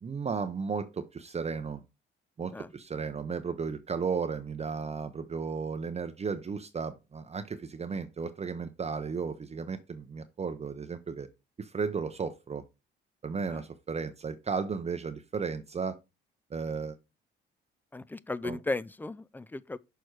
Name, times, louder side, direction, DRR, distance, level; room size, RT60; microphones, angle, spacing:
voice 1, 0.0-1.8 2.4-11.3 11.6-12.6 13.2-16.0 16.5-16.9 18.4-18.6, right 5 dB, 30° right, 0.7 m, -34 dB
voice 2, 17.9-19.8, left 2 dB, 10° left, 0.4 m, -35 dB
6.5 x 4.5 x 4.7 m
cardioid pair, 90°, 20 cm